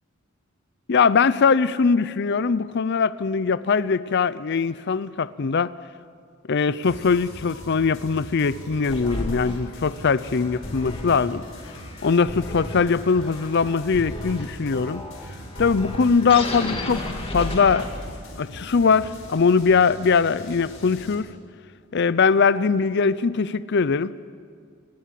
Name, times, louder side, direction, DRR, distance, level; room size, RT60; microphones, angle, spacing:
voice 1, 0.9-5.7 6.5-11.4 12.0-15.0 15.6-17.9 18.4-21.3 21.9-24.1, left 5 dB, 55° left, 17 dB, 0.5 m, -21 dB
sound 1, 6.8-21.1, left 1 dB, 80° left, 4.5 m, -41 dB
sound 2, 8.9-18.3, left 1 dB, 30° left, 2.6 m, -34 dB
26.5 x 20.0 x 7.6 m, 2.1 s
head